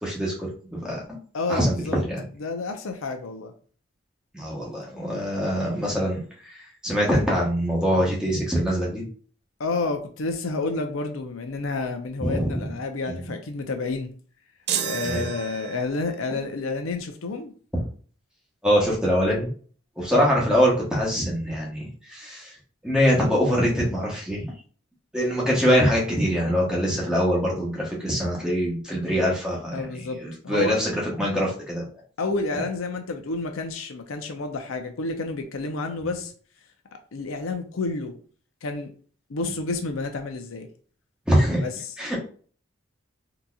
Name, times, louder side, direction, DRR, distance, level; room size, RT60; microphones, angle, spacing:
voice 1, 0.0-1.0 1.5-2.2 4.3-9.0 12.2-12.7 13.1-13.3 15.0-15.3 18.6-19.5 20.0-22.5 22.8-24.4 25.1-31.8 32.5-32.6 36.0-36.1 41.3-41.6 42.0-42.2, equal, 5° right, 1.0 m, -24 dB
voice 2, 1.3-2.0 2.4-3.5 9.6-14.1 14.8-17.5 29.7-30.2 30.4-30.8 32.2-36.3 37.1-38.1 38.6-38.9 39.3-40.7 41.6-41.7, left 3 dB, 85° left, 0.6 m, -29 dB
sound 1, 14.7-16.2, right 8 dB, 50° right, 0.4 m, -31 dB
3.8 x 2.9 x 2.3 m
head